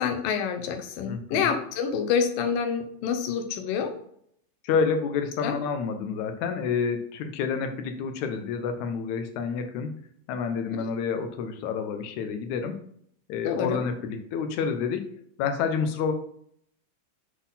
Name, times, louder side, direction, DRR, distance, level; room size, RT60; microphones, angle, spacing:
voice 1, 0.0-3.9 5.4-5.6 13.4-13.8, left 7 dB, 90° left, 6 dB, 2.7 m, -27 dB
voice 2, 1.1-1.5 4.6-9.9 10.3-12.8 13.3-15.1 15.4-16.1, left 6 dB, 70° left, 7 dB, 2.0 m, -29 dB
7.9 x 4.1 x 4.0 m, 0.67 s
omnidirectional pair, 3.9 m